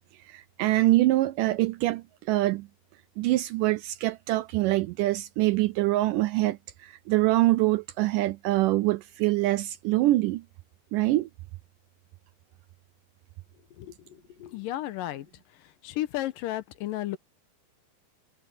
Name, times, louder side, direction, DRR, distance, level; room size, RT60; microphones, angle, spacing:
voice 1, 0.3-2.7 3.2-10.4 10.9-11.3, right 17 dB, 80° right, 1.9 m, -24 dB
voice 2, 13.8-15.3 15.5-17.2, left 14 dB, 80° left, 2.4 m, -34 dB
omnidirectional pair, 4.2 m